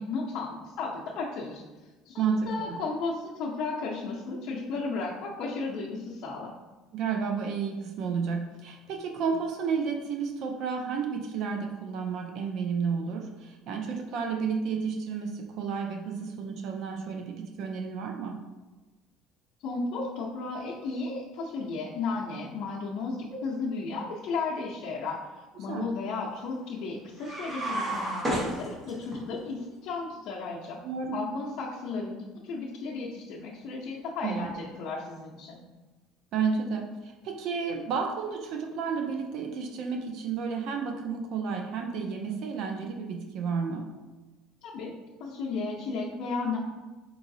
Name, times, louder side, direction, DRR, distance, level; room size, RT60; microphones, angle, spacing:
voice 1, 0.0-1.6 2.0-6.5 19.6-25.2 25.6-30.8 31.1-35.6 44.6-44.9 45.2-46.6, left 4 dB, 60° left, -6 dB, 0.6 m, -34 dB
voice 2, 2.2-2.7 6.9-18.4 25.7-25.9 30.8-31.2 34.2-34.5 36.3-43.8, right 5 dB, 55° right, 3 dB, 0.4 m, -31 dB
sound 1, 27.2-29.2, right 1 dB, 20° right, 1.0 m, -31 dB
4.7 x 3.0 x 2.6 m, 1.2 s
cardioid pair, 145°, 0 cm